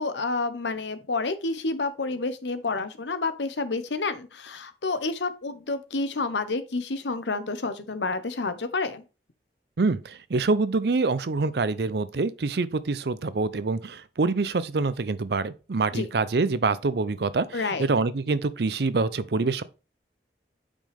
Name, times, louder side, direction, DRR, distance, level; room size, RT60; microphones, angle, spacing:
voice 1, 0.0-9.0 15.9-16.1 17.5-17.9, left 3 dB, 85° left, 0.9 m, -29 dB
voice 2, 9.8-19.6, right 3 dB, 65° right, 0.5 m, -26 dB
9.0 x 5.3 x 3.4 m
head